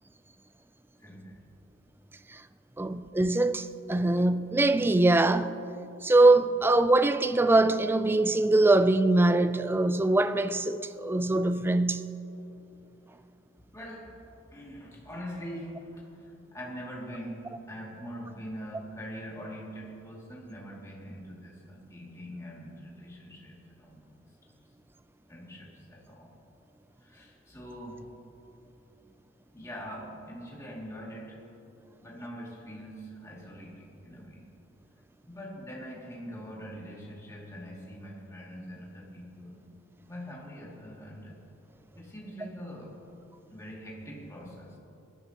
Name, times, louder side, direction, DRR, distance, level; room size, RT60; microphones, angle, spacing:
voice 1, 1.0-1.4 13.6-14.2 14.5-24.1 25.3-26.4 27.0-28.1 29.5-31.4 32.0-34.5 35.3-39.7 40.1-41.4 41.9-43.0 43.5-44.8, equal, 15° left, 2.4 m, -43 dB
voice 2, 2.8-5.6 6.0-12.1, right 2 dB, 10° right, 0.3 m, -23 dB
22.0 x 12.5 x 2.9 m
head